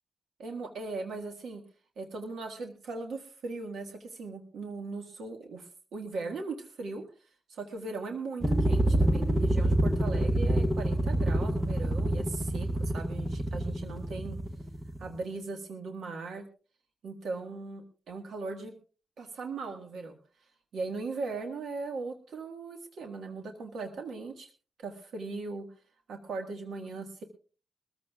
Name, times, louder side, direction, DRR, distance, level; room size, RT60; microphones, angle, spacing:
voice 1, 0.4-1.6 2.0-7.0 7.5-14.4 15.0-16.4 17.0-18.7 19.2-20.2 20.7-24.5 24.8-25.7 26.1-27.2, right 3 dB, 85° right, 3 dB, 1.6 m, -39 dB
sound 1, 8.4-15.1, right 1 dB, 5° right, 0.9 m, -27 dB
22.0 x 14.5 x 2.4 m, 0.36 s
wide cardioid pair, 140°, 0 cm